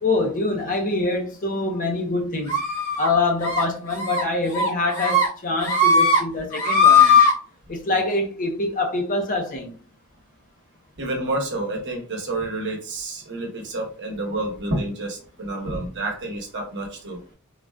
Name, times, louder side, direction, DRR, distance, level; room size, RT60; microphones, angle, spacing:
voice 1, 0.0-2.5 3.0-7.2 7.7-9.8, left 2 dB, 40° left, 0.6 m, -25 dB
sound 1, 2.5-3.1 3.4-3.6 4.0-4.2 4.5-5.3 5.6-6.2 6.5-7.3, left 3 dB, 60° left, 1.2 m, -17 dB
voice 2, 11.0-17.2, right 2 dB, 55° right, 0.9 m, -29 dB
3.8 x 2.2 x 2.2 m
head